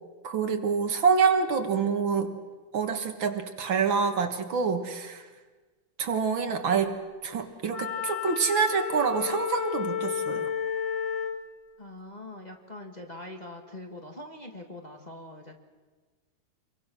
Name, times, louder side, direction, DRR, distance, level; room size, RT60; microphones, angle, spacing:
voice 1, 0.2-2.4 2.7-5.3 6.0-7.0 7.2-10.5, right 5 dB, 65° right, 6 dB, 2.3 m, -26 dB
Wind instrument woodwind instrument, 7.7-11.4, left 7 dB, 65° left, 2.6 m, -31 dB
voice 2, 11.8-15.6, left 1 dB, 20° left, 2 dB, 1.7 m, -43 dB
27.0 x 22.5 x 6.2 m, 1.4 s
omnidirectional pair, 2.4 m